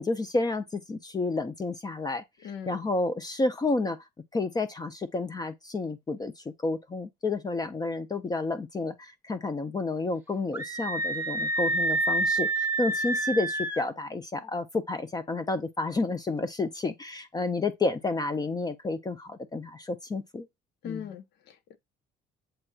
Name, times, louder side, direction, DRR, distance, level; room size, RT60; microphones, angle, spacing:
voice 1, 0.0-4.0 4.3-20.5 20.8-21.1, left 3 dB, 25° left, 0.6 m, -30 dB
voice 2, 2.4-2.9 20.8-21.7, left 8 dB, 75° left, 0.9 m, -40 dB
Screaming, 10.5-13.9, right 2 dB, 10° right, 1.0 m, -28 dB
7.8 x 3.0 x 2.3 m
cardioid pair, 110°, 17 cm